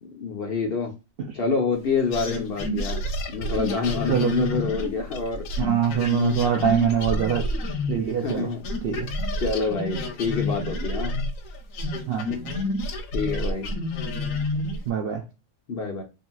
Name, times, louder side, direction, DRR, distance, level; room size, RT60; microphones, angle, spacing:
voice 1, 0.2-0.9 1.3-3.0 3.3-5.5 8.2-8.6 9.4-11.1 13.1-13.7 15.7-16.0, left 4 dB, 55° left, 0.8 m, -27 dB
sound 1, 2.1-8.4 8.6-14.9, left 1 dB, 80° left, 1.0 m, -29 dB
voice 2, 4.1-4.6 5.6-8.5 8.8-9.1 12.1-12.5 14.9-15.2, right 8 dB, 65° right, 0.6 m, -24 dB
2.8 x 2.8 x 2.2 m
omnidirectional pair, 1.4 m